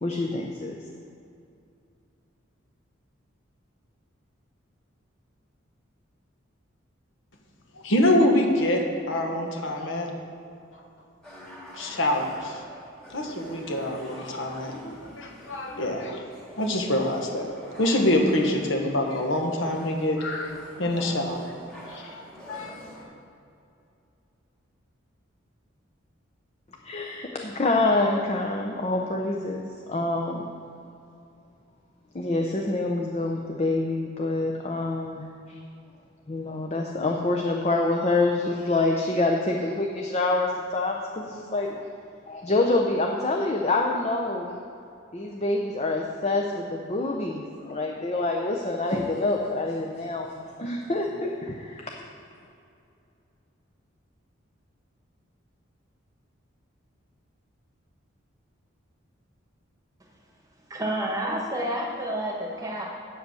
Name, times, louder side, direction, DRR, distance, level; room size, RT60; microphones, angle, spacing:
voice 1, 0.0-0.7 26.8-30.5 32.1-35.6 36.3-41.9 42.3-44.6 45.1-51.9, left 2 dB, 30° left, 1 dB, 0.6 m, -26 dB
voice 2, 7.8-10.1 11.7-12.6 13.1-16.2 16.6-20.5 20.8-21.5 21.9-22.7, left 1 dB, 70° left, 2 dB, 1.3 m, -25 dB
sound 1, 11.2-23.0, equal, 5° left, 2.0 m, -46 dB
voice 3, 60.7-62.9, right 1 dB, 15° right, -1 dB, 1.3 m, -29 dB
8.1 x 7.8 x 6.2 m, 2.6 s
head